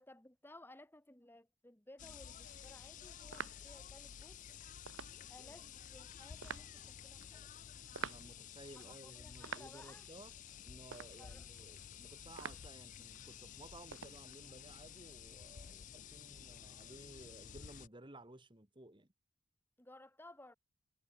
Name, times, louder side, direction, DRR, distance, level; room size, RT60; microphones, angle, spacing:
voice 1, 0.0-4.4 5.3-7.5 8.8-10.1 11.2-11.5 19.8-20.6, left 1 dB, 10° left, 1.9 m, -58 dB
sound 1, 2.0-17.9, left 8 dB, 40° left, 0.4 m, -52 dB
sound 2, 2.4-14.2, right 7 dB, 70° right, 0.7 m, -52 dB
voice 2, 7.9-10.3 10.6-19.1, right 1 dB, 25° right, 2.2 m, -56 dB
head